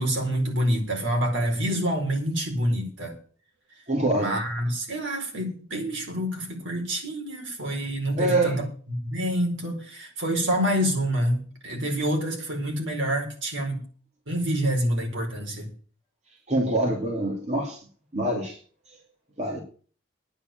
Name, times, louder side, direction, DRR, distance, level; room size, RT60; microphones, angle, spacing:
voice 1, 0.0-3.1 4.1-13.8 14.3-15.7, equal, 70° right, 4.6 m, -27 dB
voice 2, 3.9-4.4 8.2-8.6 16.5-17.8 18.1-18.6 19.4-19.6, right 2 dB, 35° right, 2.4 m, -25 dB
10.0 x 8.2 x 8.8 m
head